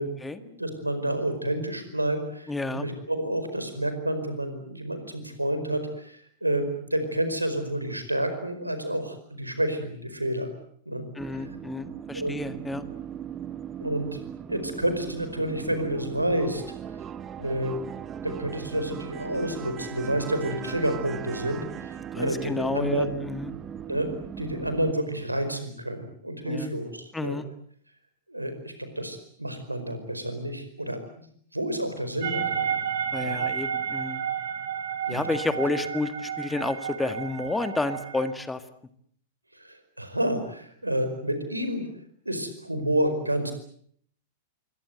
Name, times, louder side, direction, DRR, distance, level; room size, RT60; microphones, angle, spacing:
voice 1, 0.4-10.5 10.8-11.1 12.1-12.4 13.8-14.1 14.5-16.6 17.4-17.8 18.2-23.1 23.9-27.4 28.3-31.0 31.5-32.8 33.2-33.4 35.1-35.3 39.5-41.9 42.2-43.5, right 1 dB, 85° right, 9 dB, 4.9 m, -29 dB
voice 2, 2.5-2.9 11.2-12.9 22.1-23.5 26.5-26.7 27.1-27.5 33.1-34.2 35.1-38.6, left 3 dB, 10° left, 11 dB, 1.8 m, -30 dB
sound 1, 11.2-24.9, right 9 dB, 25° right, 1.1 m, -38 dB
sound 2, 32.2-38.3, right 8 dB, 60° right, 4.7 m, -31 dB
27.5 x 23.5 x 7.9 m, 0.63 s
figure-of-eight pair, 95°, 0 cm